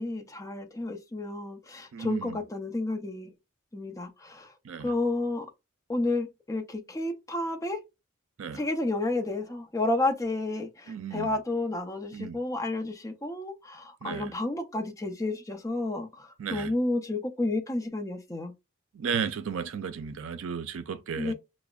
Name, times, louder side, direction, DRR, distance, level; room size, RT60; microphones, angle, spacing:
voice 1, 0.0-3.3 3.7-4.5 4.8-5.5 5.9-7.8 8.5-18.5 21.2-21.3, left 2 dB, 15° left, 0.5 m, -31 dB
voice 2, 1.9-2.4 4.6-4.9 8.4-8.6 10.9-11.3 12.1-12.4 14.0-14.3 16.4-16.7 18.9-21.3, right 6 dB, 80° right, 0.4 m, -34 dB
5.8 x 2.0 x 2.3 m
head